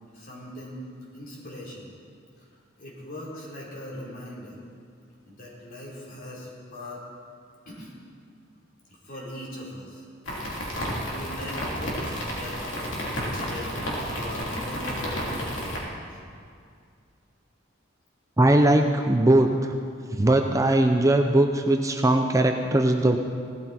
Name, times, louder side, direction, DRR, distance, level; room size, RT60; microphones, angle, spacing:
voice 1, 0.1-0.8 1.1-2.0 2.4-2.5 2.8-4.6 5.2-7.0 7.7-7.9 8.9-10.0 10.6-10.7 11.0-12.6 13.1-16.2, left 1 dB, 50° left, -5 dB, 3.9 m, -40 dB
sound 1, 10.3-15.8, equal, 70° left, 3.2 m, -31 dB
voice 2, 18.4-19.5 20.1-23.2, right 1 dB, 15° right, 4 dB, 0.6 m, -20 dB
17.5 x 13.0 x 4.4 m, 2.3 s
head